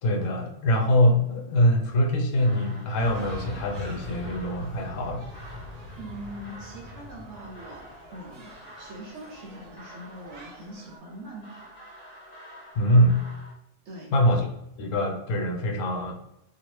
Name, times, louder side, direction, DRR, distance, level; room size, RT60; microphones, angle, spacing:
voice 1, 0.0-5.3 12.7-13.2 14.1-14.5 14.8-16.1, equal, 80° left, 2 dB, 1.0 m, -23 dB
sound 1, 2.4-13.5, equal, 40° left, 0.7 m, -49 dB
sound 2, 3.0-11.0, left 1 dB, 35° right, 0.7 m, -43 dB
voice 2, 6.0-11.8 13.8-14.2, right 1 dB, 70° right, -1 dB, 0.8 m, -42 dB
2.8 x 2.4 x 3.1 m, 0.80 s
omnidirectional pair, 1.3 m